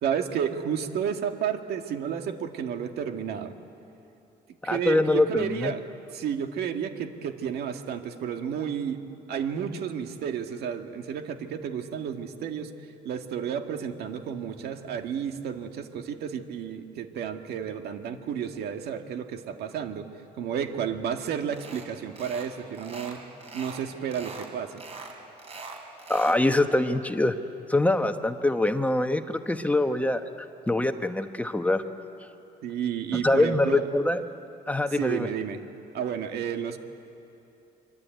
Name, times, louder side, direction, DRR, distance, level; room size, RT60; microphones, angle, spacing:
voice 1, 0.0-3.5 4.6-5.8 6.1-9.0 9.3-12.7 13.0-20.1 20.4-23.2 23.5-24.8 32.6-33.9 34.9-35.6 35.9-36.8, right 8 dB, 70° right, 5 dB, 2.0 m, -31 dB
voice 2, 4.6-5.7 26.1-27.4 27.7-31.8 33.1-34.2 34.7-35.3, left 2 dB, 10° left, 7 dB, 1.1 m, -24 dB
sound 1, 21.5-21.9 22.2-22.5 22.7-23.8 24.1-24.5 24.8-26.4, right 3 dB, 35° right, 4.9 m, -42 dB
25.0 x 24.0 x 9.2 m, 2.9 s
cardioid pair, 110°, 17 cm